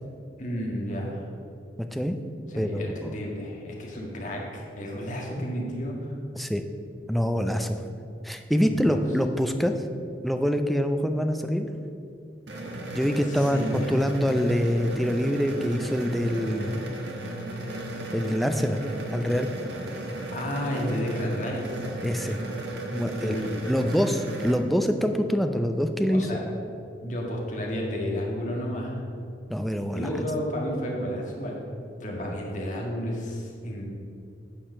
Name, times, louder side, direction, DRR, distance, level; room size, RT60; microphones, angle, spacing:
voice 1, 0.4-1.2 2.5-6.1 8.6-8.8 13.3-13.8 20.3-21.8 23.1-23.5 26.1-26.4 27.0-29.0 29.9-31.6 32.0-33.8, equal, 45° left, -1 dB, 1.7 m, -32 dB
voice 2, 2.6-2.9 6.3-6.6 7.1-7.8 8.2-9.7 10.2-11.7 12.9-16.9 18.1-18.8 19.1-19.5 22.0-22.4 22.9-23.4 23.7-26.3 29.5-30.1, equal, ahead, 6 dB, 0.4 m, -25 dB
sound 1, 12.5-24.5, right 1 dB, 80° right, 1.4 m, -35 dB
8.9 x 5.0 x 6.6 m, 2.5 s
head